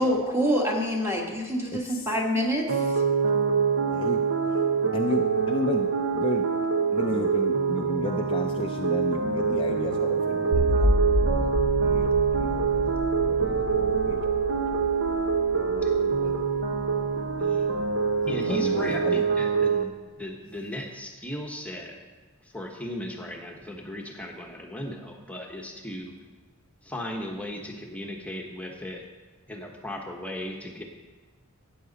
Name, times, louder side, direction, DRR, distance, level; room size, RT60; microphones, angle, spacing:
voice 1, 0.0-3.0, equal, 10° right, -1 dB, 1.7 m, -26 dB
voice 2, 1.7-2.1 3.9-4.2 4.9-6.5 6.9-12.1 12.4-12.9 13.2-14.4 14.8-14.9 15.8-16.3 18.5-19.2, left 2 dB, 25° left, 3 dB, 0.4 m, -33 dB
sound 1, 2.7-19.8, right 5 dB, 60° right, 1.0 m, -25 dB
sound 2, 10.5-17.7, left 1 dB, 80° right, 1.7 m, -29 dB
voice 3, 18.3-22.0 22.4-26.1 26.8-29.0 29.5-30.8, left 1 dB, 5° left, 1 dB, 1.1 m, -36 dB
13.0 x 9.2 x 4.1 m, 1.3 s
head